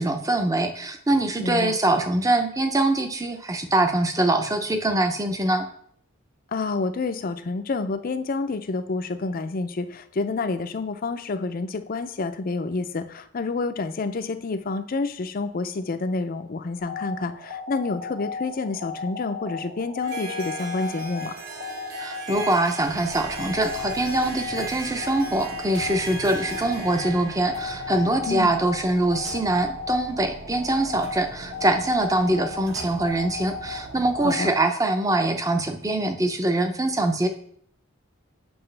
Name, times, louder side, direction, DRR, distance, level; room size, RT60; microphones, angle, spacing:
voice 1, 0.0-5.7 22.0-37.3, right 2 dB, 15° right, 6 dB, 0.6 m, -23 dB
voice 2, 1.4-1.7 6.5-21.4 28.3-28.5 34.2-34.5, left 3 dB, 45° left, 10 dB, 0.5 m, -28 dB
sound 1, 16.8-34.5, left 4 dB, 70° right, 1.8 m, -36 dB
Harp, 20.0-28.8, right 3 dB, 50° right, 1.8 m, -39 dB
sound 2, 22.8-34.4, right 1 dB, 85° right, 1.3 m, -43 dB
7.9 x 6.0 x 3.3 m, 0.65 s
head